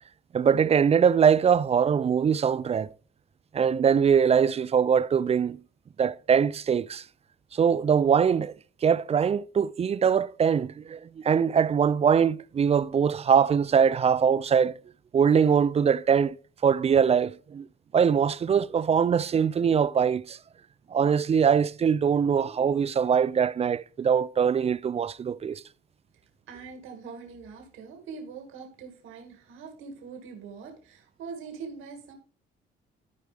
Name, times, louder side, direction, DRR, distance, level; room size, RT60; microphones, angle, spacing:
voice 1, 0.3-2.9 3.5-5.6 6.0-7.0 7.5-8.5 8.8-14.7 15.1-16.4 16.6-17.7 17.9-20.4 20.9-25.6, right 7 dB, 30° right, 0.4 m, -22 dB
voice 2, 26.5-32.1, right 5 dB, 90° right, 2.0 m, -43 dB
13.5 x 4.7 x 3.3 m
cardioid pair, 90°, 20 cm